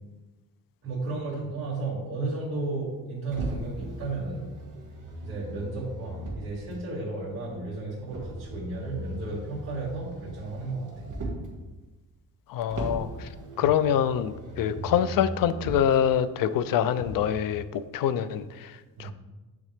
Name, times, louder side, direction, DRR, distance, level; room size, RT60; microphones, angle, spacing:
voice 1, 0.8-4.4 5.2-11.5 13.6-13.7 14.7-14.9 19.0-19.1, right 3 dB, 35° right, -7 dB, 2.2 m, -34 dB
Motor vehicle (road), 3.3-6.8 8.1-11.6 12.7-16.0 16.9-17.3, right 1 dB, 55° right, 2.0 m, -38 dB
voice 2, 12.5-13.3 13.6-19.1, left 9 dB, 60° left, 13 dB, 0.5 m, -25 dB
9.2 x 3.8 x 3.5 m, 1.2 s
cardioid pair, 130°, 37 cm